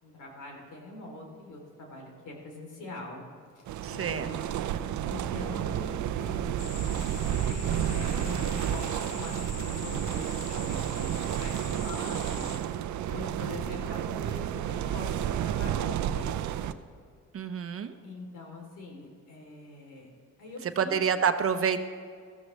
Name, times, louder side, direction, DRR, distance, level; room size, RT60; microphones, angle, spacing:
voice 1, 0.0-3.2 3.5-6.8 7.3-12.6 13.1-16.6 18.0-20.1 20.4-21.0, left 2 dB, 85° left, 1 dB, 3.4 m, -43 dB
sound 1, 3.7-16.7, right 10 dB, 75° right, 0.6 m, -31 dB
voice 2, 3.8-4.3 17.3-17.9 20.6-21.8, right 7 dB, 50° right, 9 dB, 0.9 m, -28 dB
sound 2, 6.6-12.6, left 2 dB, 55° left, 4.0 m, -43 dB
16.0 x 14.0 x 3.3 m, 2.2 s
cardioid pair, 90°, 30 cm